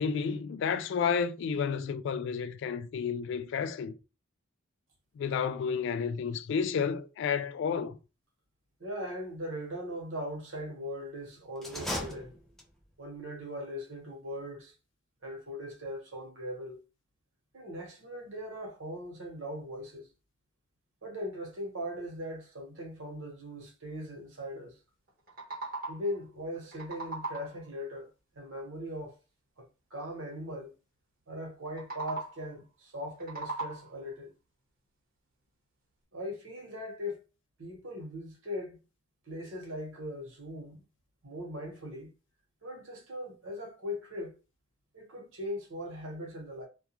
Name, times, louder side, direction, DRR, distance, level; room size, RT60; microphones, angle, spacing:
voice 1, 0.0-3.9 5.2-8.0, left 6 dB, 65° left, 0.3 m, -31 dB
voice 2, 8.8-12.4 13.0-14.7 15.2-16.8 17.5-20.1 21.0-24.8 25.9-28.1 28.3-29.2 29.6-30.7 31.3-34.3 36.1-37.2 37.6-38.8 39.3-40.8 41.2-42.1 42.6-44.3 44.9-46.7, equal, 90° right, 1.1 m, -39 dB
sound 1, 11.6-12.9, left 1 dB, ahead, 0.5 m, -37 dB
sound 2, 25.1-26.2 26.5-27.7 31.7-32.5 33.0-34.1, right 3 dB, 50° right, 0.9 m, -39 dB
2.3 x 2.2 x 2.8 m
head